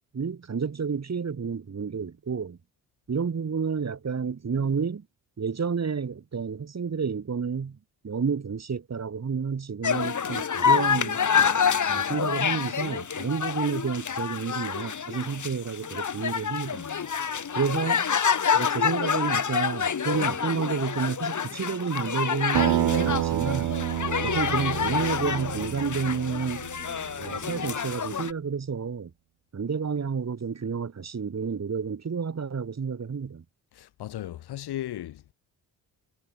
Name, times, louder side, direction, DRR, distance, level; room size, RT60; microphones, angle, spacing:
voice 1, 0.1-2.6 3.1-5.0 5.4-7.8 8.0-11.2 11.9-16.9 17.5-18.0 18.5-23.8 24.2-26.7 27.2-29.1 29.5-33.4, right 6 dB, 45° right, 5.0 m, -30 dB
sound 1, 9.8-28.3, left 7 dB, 50° left, 5.1 m, -27 dB
Acoustic guitar, 22.5-27.4, right 13 dB, 80° right, 2.3 m, -29 dB
voice 2, 33.7-35.3, left 13 dB, 85° left, 7.7 m, -36 dB
cardioid pair, 75°, 38 cm